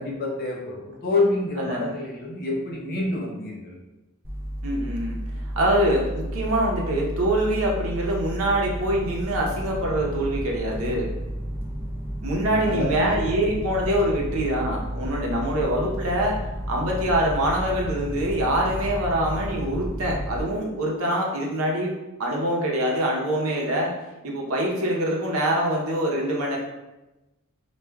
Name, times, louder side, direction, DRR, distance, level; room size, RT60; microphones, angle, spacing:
voice 1, 0.0-3.7 12.4-13.2, left 2 dB, 45° left, -2 dB, 0.7 m, -27 dB
voice 2, 1.6-1.9 4.6-5.2 5.6-11.1 12.2-16.4 16.7-23.9 24.2-26.6, right 1 dB, 70° right, -1 dB, 0.7 m, -24 dB
sound 1, 4.2-20.4, equal, 10° right, 0.4 m, -32 dB
4.6 x 2.3 x 2.2 m, 1.0 s
head